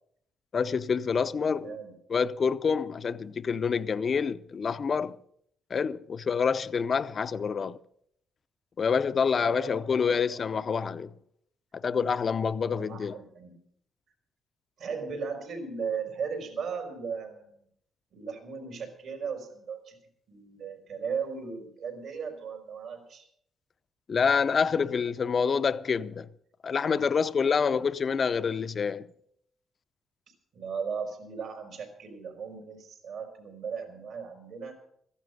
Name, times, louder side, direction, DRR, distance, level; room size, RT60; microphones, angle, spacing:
voice 1, 0.5-1.8 2.1-5.2 5.7-7.8 8.8-11.1 11.7-13.1 24.1-26.3 26.6-29.1, left 6 dB, 45° left, 0.6 m, -27 dB
voice 2, 1.4-1.9 9.3-10.1 12.8-13.6 14.8-17.5 18.1-20.0 20.3-23.3 27.7-28.0 30.5-34.8, right 6 dB, 70° right, 4.4 m, -37 dB
14.0 x 11.0 x 6.5 m
cardioid pair, 90°, 0 cm